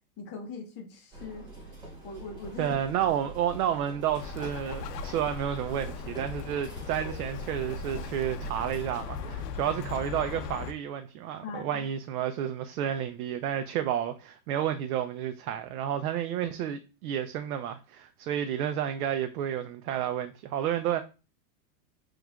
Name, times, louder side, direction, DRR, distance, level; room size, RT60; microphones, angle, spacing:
voice 1, 0.2-1.5 2.0-2.7 11.4-11.8, left 4 dB, 20° left, 0.6 m, -40 dB
sound 1, 1.1-9.5, right 1 dB, 10° right, 1.3 m, -45 dB
voice 2, 2.6-21.0, right 10 dB, 65° right, 0.6 m, -31 dB
Bird, 4.2-10.7, left 5 dB, 70° left, 0.7 m, -38 dB
6.1 x 2.4 x 2.3 m
supercardioid pair, 155°, 50 cm